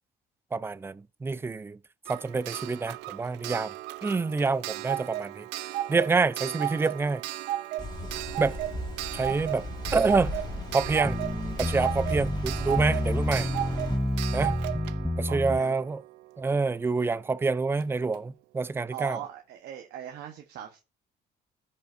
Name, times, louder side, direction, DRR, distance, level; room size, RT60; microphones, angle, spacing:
voice 1, 0.5-1.8 2.1-3.7 4.0-5.5 5.9-7.2 8.4-8.6 9.1-9.6 9.9-10.3 10.7-11.2 11.6-13.5 14.3-14.6 15.2-16.0 16.4-19.2, right 4 dB, 15° right, 0.3 m, -27 dB
Clock, 2.1-16.6 17.8-17.9 18.1-18.2, right 14 dB, 90° right, 0.5 m, -35 dB
sound 1, 7.8-14.0, left 1 dB, 25° left, 1.7 m, -37 dB
sound 2, 11.0-15.6, left 1 dB, ahead, 0.8 m, -29 dB
voice 2, 15.2-15.8 18.9-20.8, right 10 dB, 70° right, 1.0 m, -40 dB
14.5 x 5.5 x 2.6 m
cardioid pair, 110°, 17 cm